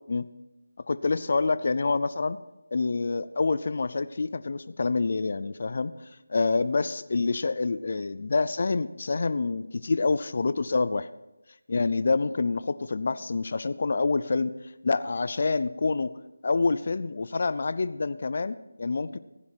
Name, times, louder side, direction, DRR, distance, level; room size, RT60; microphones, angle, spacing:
voice 1, 0.9-2.4 2.7-5.9 6.3-11.1 11.7-14.5 14.8-16.1 16.4-19.2, left 3 dB, 50° left, 14 dB, 0.5 m, -27 dB
15.0 x 10.5 x 4.5 m, 0.95 s
figure-of-eight pair, 170°, 0 cm